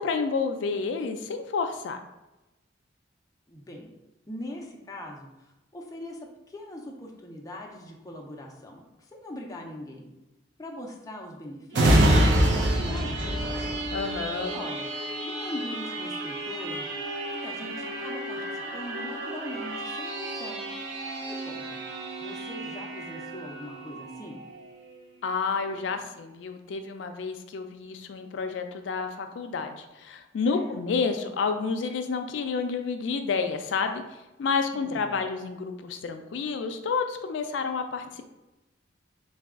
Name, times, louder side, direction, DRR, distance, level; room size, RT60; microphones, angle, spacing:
voice 1, 0.0-2.0 13.9-14.5 25.2-34.0 34.4-38.2, left 5 dB, 80° left, 6 dB, 0.4 m, -30 dB
voice 2, 3.5-3.9 4.3-10.1 10.6-13.6 14.5-14.9 15.2-16.9 17.4-20.7 21.2-21.8 22.2-24.4 30.4-30.8 34.7-35.1, left 1 dB, 20° left, 0 dB, 0.5 m, -41 dB
sound 1, 11.7-25.0 25.5-25.6, right 1 dB, 80° right, 0.7 m, -28 dB
4.0 x 2.2 x 3.5 m, 1.0 s
head